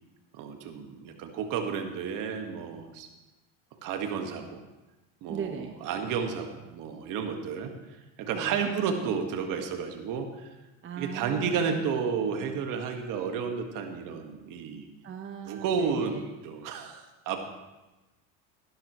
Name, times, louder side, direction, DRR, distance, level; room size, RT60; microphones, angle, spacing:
voice 1, 0.3-3.1 3.8-4.6 5.2-7.7 8.2-10.5 11.0-14.9 15.5-17.5, right 6 dB, 60° right, 5 dB, 1.8 m, -32 dB
voice 2, 5.3-5.8 8.3-8.7 10.8-11.9 12.3-12.4 15.0-16.3, right 7 dB, 35° right, 4 dB, 1.1 m, -39 dB
16.5 x 11.5 x 3.2 m, 1.1 s
supercardioid pair, 95°, 36 cm